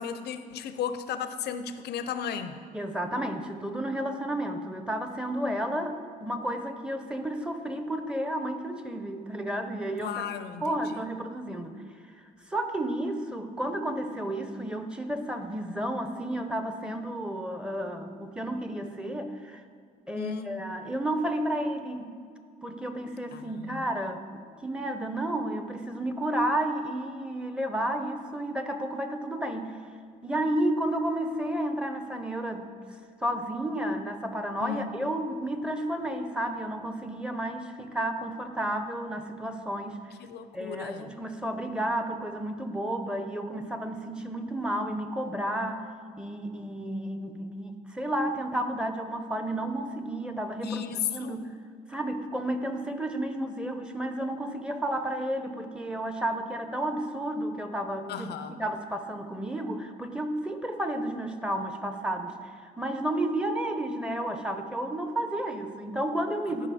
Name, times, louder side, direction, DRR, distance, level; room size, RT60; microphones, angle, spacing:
voice 1, 0.0-2.6 10.0-11.0 20.1-20.5 23.3-23.8 34.6-34.9 40.2-41.1 50.6-51.4 58.1-58.6, left 8 dB, 90° left, 10 dB, 0.6 m, -35 dB
voice 2, 2.7-10.2 10.6-11.8 12.5-19.6 20.1-22.1 22.6-24.2 24.6-29.8 30.2-32.7 33.2-40.0 40.5-45.9 46.2-50.8 51.1-51.5 51.9-58.3 58.6-66.7, right 1 dB, 5° right, 6 dB, 0.8 m, -32 dB
13.5 x 5.2 x 4.2 m, 2.2 s
cardioid pair, 95°, 17 cm